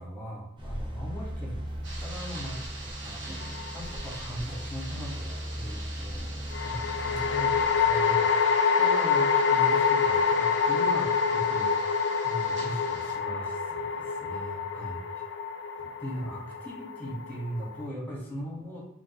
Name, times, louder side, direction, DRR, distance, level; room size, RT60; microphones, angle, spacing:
voice 1, 0.0-11.8 12.2-15.0 15.8-18.8, equal, 10° left, -3 dB, 1.5 m, -39 dB
sound 1, 0.6-8.0, equal, 25° right, 0.8 m, -37 dB
sound 2, 1.8-13.1, right 2 dB, 70° right, 0.9 m, -45 dB
sound 3, 3.4-4.1 6.5-17.9, left 6 dB, 65° left, 0.4 m, -26 dB
5.0 x 3.0 x 3.0 m, 0.80 s
head